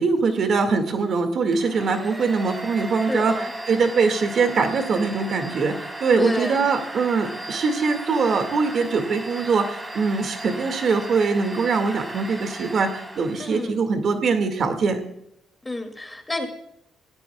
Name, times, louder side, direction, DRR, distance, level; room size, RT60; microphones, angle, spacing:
voice 1, 0.0-3.4 3.7-15.0, right 4 dB, 55° right, 7 dB, 2.0 m, -22 dB
Domestic sounds home sounds, 1.5-13.6, right 1 dB, 15° right, 2.9 m, -36 dB
voice 2, 3.1-3.5 6.2-6.6 13.4-13.8 15.6-16.5, left 2 dB, 15° left, 4 dB, 2.5 m, -29 dB
21.0 x 15.5 x 2.3 m, 0.79 s
cardioid pair, 90°, 0 cm